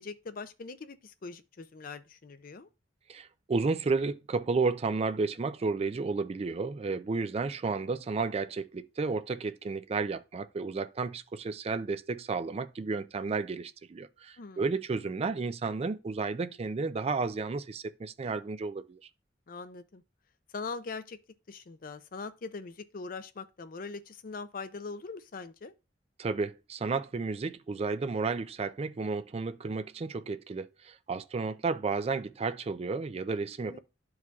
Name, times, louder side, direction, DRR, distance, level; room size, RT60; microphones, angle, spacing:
voice 1, 0.0-2.7 14.4-14.6 19.5-20.0 20.5-21.2 21.5-25.7 33.6-33.8, left 4 dB, 50° left, 0.5 m, -41 dB
voice 2, 3.1-19.0 26.2-33.8, right 4 dB, 35° right, 0.4 m, -32 dB
12.5 x 4.7 x 2.3 m
head